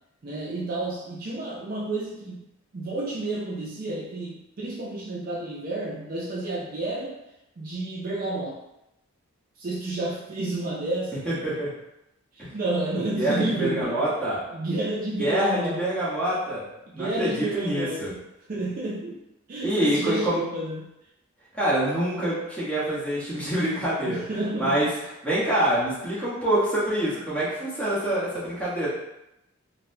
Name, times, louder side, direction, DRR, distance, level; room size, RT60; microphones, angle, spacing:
voice 1, 0.2-2.5 2.7-7.2 7.6-8.6 9.6-11.4 12.3-14.0 14.5-15.9 16.9-18.1 18.5-19.2 19.5-20.9 24.0-24.8, right 2 dB, 40° right, -3 dB, 0.4 m, -30 dB
voice 2, 11.3-11.7 12.4-12.5 13.2-14.4 15.2-16.7 16.9-18.1 19.6-20.4 21.5-24.2 24.6-24.9 25.2-28.9, right 1 dB, 5° left, -9 dB, 1.0 m, -26 dB
3.9 x 2.1 x 2.6 m, 0.88 s
head